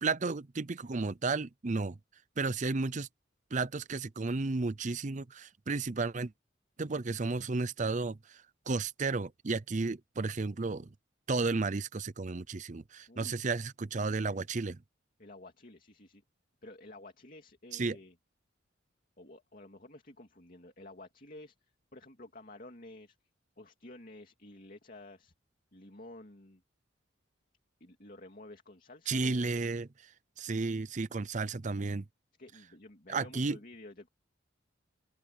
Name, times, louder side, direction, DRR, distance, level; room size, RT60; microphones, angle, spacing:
voice 1, 0.0-2.0 2.4-3.1 3.5-6.3 6.8-10.9 11.3-14.8 17.7-18.0 29.1-29.9 30.4-32.0 33.1-33.6, right 3 dB, 40° right, 0.6 m, -33 dB
voice 2, 13.1-13.4 14.2-14.4 15.2-16.2 16.6-18.2 19.2-23.2 23.6-25.3 25.7-26.6 27.8-29.6 32.4-34.1, left 2 dB, 45° left, 2.6 m, -51 dB
open air
head